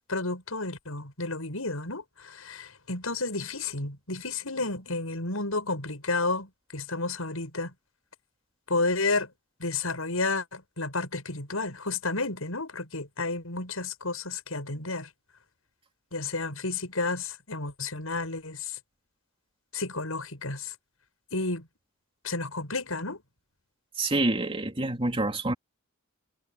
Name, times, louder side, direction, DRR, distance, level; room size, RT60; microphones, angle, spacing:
voice 1, 0.1-7.7 8.7-9.3 9.6-15.1 16.1-18.8 19.7-20.7 21.3-21.7 22.2-23.2, left 3 dB, 90° left, 7.0 m, -31 dB
voice 2, 24.0-25.5, right 2 dB, 25° right, 3.0 m, -27 dB
head